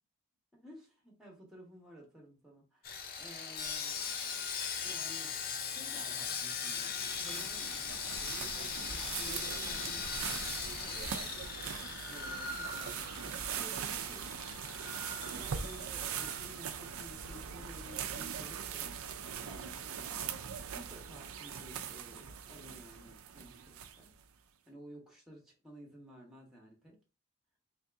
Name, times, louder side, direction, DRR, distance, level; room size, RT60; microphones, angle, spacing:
voice 1, 0.5-4.0 4.8-11.3 12.0-14.4 15.3-20.3 20.7-24.1 24.7-27.0, equal, ahead, -2 dB, 1.0 m, -54 dB
Sawing, 2.8-17.1 17.3-17.5 18.0-18.1, left 6 dB, 45° left, 0.5 m, -40 dB
sound 1, 6.4-24.2, right 8 dB, 90° right, 0.5 m, -41 dB
3.2 x 2.7 x 3.4 m, 0.32 s
head